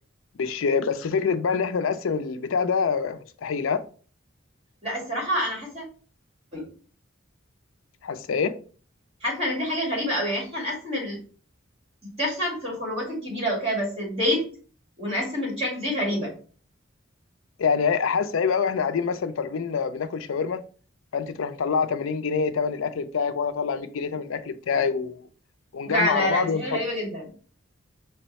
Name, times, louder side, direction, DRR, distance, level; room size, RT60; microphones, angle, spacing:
voice 1, 0.4-3.8 8.0-8.5 17.6-20.6 21.1-25.2 25.7-26.8, left 5 dB, 80° left, 0.4 m, -26 dB
voice 2, 4.8-5.8 6.5-6.7 9.2-11.2 12.2-14.4 15.0-16.3 25.9-27.3, equal, 30° right, 2.2 m, -27 dB
5.3 x 2.2 x 4.0 m
head